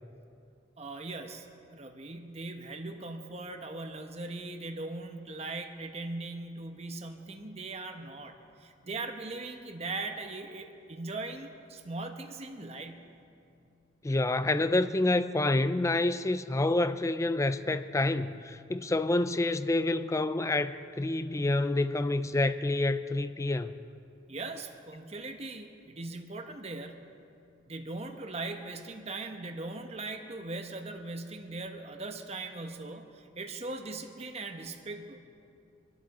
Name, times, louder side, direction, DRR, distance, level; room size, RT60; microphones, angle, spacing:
voice 1, 0.8-1.5 1.7-13.2 24.3-27.2 27.7-35.2, right 2 dB, 35° right, 1.0 m, -40 dB
voice 2, 14.0-23.8, left 2 dB, 15° left, 0.4 m, -28 dB
25.5 x 11.5 x 4.2 m
head